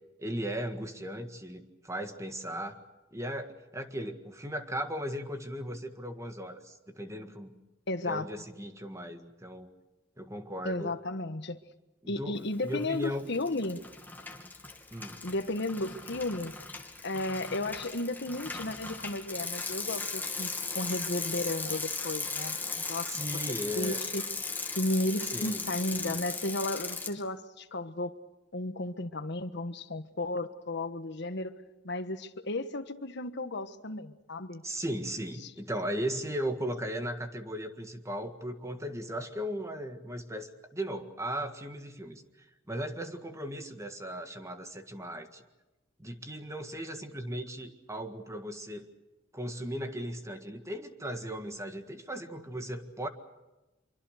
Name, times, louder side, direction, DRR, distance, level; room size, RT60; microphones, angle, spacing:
voice 1, 0.2-2.8 3.1-7.6 8.0-9.7 10.2-10.9 12.0-13.3 14.9-15.2 23.1-24.0 25.3-25.7 25.9-26.2 34.6-42.2 42.7-45.4 46.0-48.9 49.3-53.1, equal, 15° right, 7 dB, 1.7 m, -37 dB
voice 2, 7.9-8.3 10.6-11.6 12.1-13.8 15.2-16.5 17.0-23.2 23.5-24.2 24.8-28.1 28.5-31.5 31.8-34.6 35.4-35.5, left 2 dB, 60° left, 10 dB, 1.4 m, -34 dB
Bicycle, 12.7-13.1 13.3-27.1, left 3 dB, 10° left, 2.6 m, -37 dB
25.5 x 24.0 x 6.6 m, 1.0 s
head